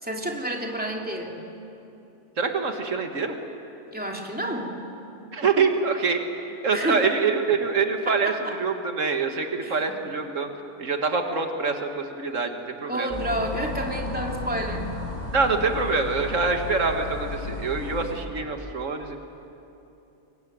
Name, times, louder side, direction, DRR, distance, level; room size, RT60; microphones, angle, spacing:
voice 1, 0.0-1.4 3.9-4.7 6.7-7.0 8.1-8.5 9.6-10.0 12.9-14.9, right 1 dB, 5° right, 0 dB, 2.9 m, -30 dB
voice 2, 2.4-3.4 5.3-6.2 6.6-10.5 10.8-13.1 15.3-19.2, right 4 dB, 85° right, 5 dB, 2.1 m, -25 dB
sound 1, 13.1-18.2, left 3 dB, 30° left, 4.6 m, -34 dB
23.5 x 23.0 x 9.5 m, 2.9 s
omnidirectional pair, 1.3 m